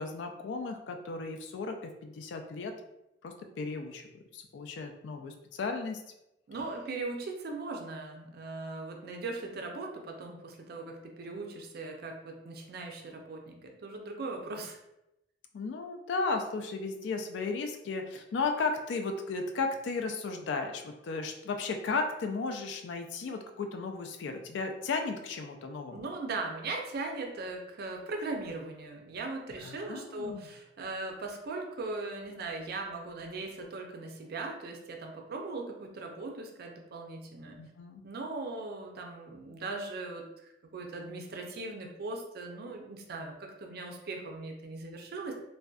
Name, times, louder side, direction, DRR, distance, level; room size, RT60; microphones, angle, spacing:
voice 1, 0.0-2.7 3.2-4.0 4.3-6.0 15.5-26.1 29.6-30.5 37.6-38.0, left 4 dB, 75° left, 5 dB, 0.3 m, -35 dB
voice 2, 6.5-14.8 25.9-37.6 38.0-45.3, right 3 dB, 60° right, 2 dB, 0.4 m, -39 dB
2.5 x 2.1 x 2.3 m, 0.88 s
head